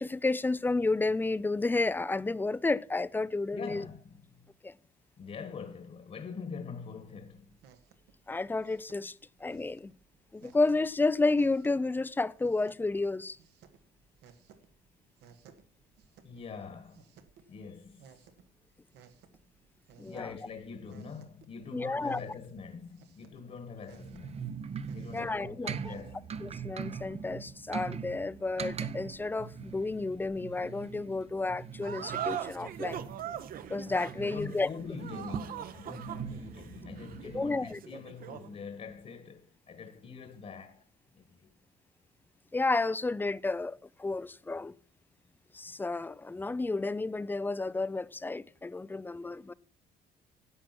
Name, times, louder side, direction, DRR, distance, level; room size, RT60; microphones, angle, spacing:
voice 1, 0.0-3.9 4.6-4.7 8.3-9.1 9.4-9.9 10.3-13.4 20.0-20.3 21.7-22.2 25.1-25.9 26.4-33.1 33.7-34.7 37.3-37.8 42.5-44.7 45.5-49.5, left 3 dB, 10° left, 0.4 m, -31 dB
voice 2, 3.5-4.4 5.2-7.6 16.2-17.2 17.5-18.2 20.0-24.4 24.9-26.4 34.2-40.8 41.1-41.5, left 5 dB, 40° left, 1.5 m, -44 dB
sound 1, 7.0-26.1, right 7 dB, 85° right, 1.7 m, -61 dB
sound 2, 23.9-37.5, right 6 dB, 40° right, 0.8 m, -42 dB
sound 3, 31.8-38.5, right 10 dB, 60° right, 1.0 m, -41 dB
11.0 x 7.5 x 6.0 m
cardioid pair, 110°, 17 cm